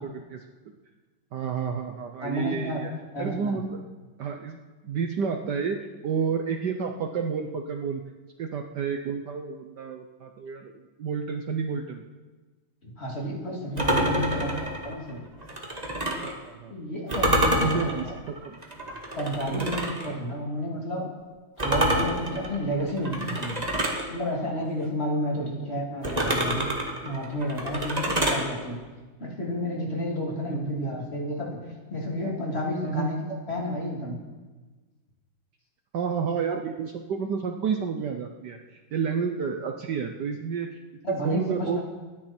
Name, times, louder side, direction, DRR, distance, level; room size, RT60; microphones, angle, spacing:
voice 1, 1.3-2.9 3.2-3.8 4.2-5.8 6.0-8.0 8.4-12.0 13.9-14.5 16.2-16.7 17.6-18.6 19.5-19.7 25.4-25.5 30.5-30.6 32.8-33.1 35.9-40.7 41.2-41.8, right 6 dB, 60° right, 4 dB, 1.3 m, -30 dB
voice 2, 2.2-2.9 3.1-3.6 12.8-14.5 14.8-15.2 16.7-18.1 19.2-21.1 21.6-23.6 24.1-26.7 27.0-28.8 29.2-31.6 31.9-34.2 41.0-41.8, equal, 30° left, -2 dB, 3.1 m, -31 dB
sound 1, 13.8-16.4 17.1-20.1 21.6-24.1 26.0-28.5, right 1 dB, 20° right, 1.7 m, -27 dB
24.5 x 10.0 x 4.4 m, 1.3 s
omnidirectional pair, 2.3 m